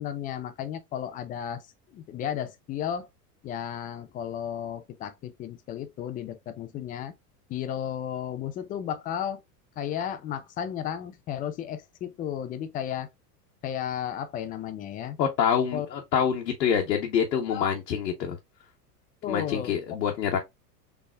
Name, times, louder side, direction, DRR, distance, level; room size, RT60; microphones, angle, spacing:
voice 1, 0.0-1.6 1.9-3.1 3.4-7.1 7.5-9.4 9.8-13.1 13.6-15.2 15.7-15.9 17.5-17.7 19.2-19.7, left 9 dB, 20° left, 0.3 m, -33 dB
voice 2, 15.2-18.4 19.3-20.4, left 8 dB, 80° left, 1.0 m, -26 dB
4.0 x 3.4 x 2.3 m
hypercardioid pair, 100°, 48 cm